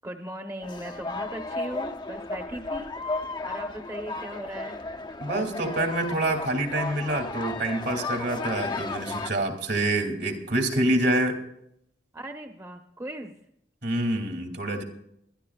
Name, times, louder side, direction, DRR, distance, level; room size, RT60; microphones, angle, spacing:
voice 1, 0.0-2.9 3.4-4.8 12.1-13.3, right 1 dB, 15° right, 5 dB, 1.0 m, -38 dB
sound 1, 0.6-9.3, left 3 dB, 25° left, 0.7 m, -34 dB
voice 2, 5.2-11.4 13.8-14.8, right 1 dB, 65° right, 3 dB, 2.6 m, -26 dB
24.0 x 12.5 x 2.4 m, 0.74 s
head